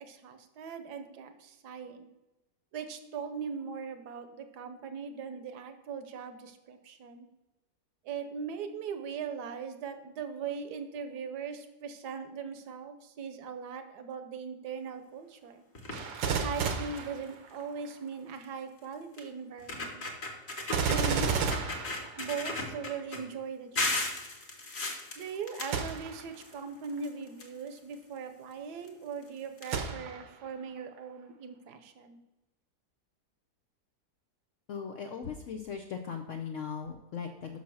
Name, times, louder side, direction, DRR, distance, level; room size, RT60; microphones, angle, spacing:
voice 1, 0.0-2.1 2.7-7.3 8.0-15.6 16.4-20.0 20.8-21.4 22.2-24.1 25.2-32.2, right 6 dB, 65° right, 8 dB, 1.3 m, -40 dB
sound 1, 15.7-16.1 16.6-16.7 17.0-17.2 18.4-18.5 19.2-19.3 19.6-21.1 21.5-23.2 23.8-26.5 26.8-27.9 28.8-28.9 29.2-29.3 29.6-29.7, left 2 dB, 40° left, 1.4 m, -35 dB
Gunshot gunfire, 15.9-17.9 20.7-22.7 25.7-26.3 26.9-27.0 29.7-30.4 31.0-31.1, right 5 dB, 80° right, 1.6 m, -32 dB
voice 2, 34.7-37.6, left 6 dB, 80° left, 5 dB, 0.6 m, -38 dB
6.0 x 5.4 x 6.2 m, 1.0 s
omnidirectional pair, 2.0 m